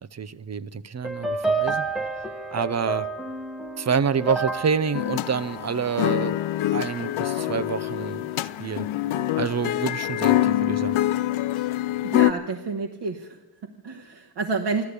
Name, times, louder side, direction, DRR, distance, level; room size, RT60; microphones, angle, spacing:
voice 1, 0.1-1.9 2.5-3.1 3.8-6.4 6.7-8.9 9.4-11.0, right 6 dB, 35° right, 15 dB, 0.6 m, -27 dB
sound 1, 1.0-6.4, right 3 dB, ahead, 1.1 m, -30 dB
sound 2, 4.9-12.3, left 14 dB, 85° left, 0.6 m, -25 dB
voice 2, 12.0-14.8, right 4 dB, 60° right, 2 dB, 1.2 m, -30 dB
14.5 x 12.0 x 8.2 m, 1.1 s
cardioid pair, 90°, 47 cm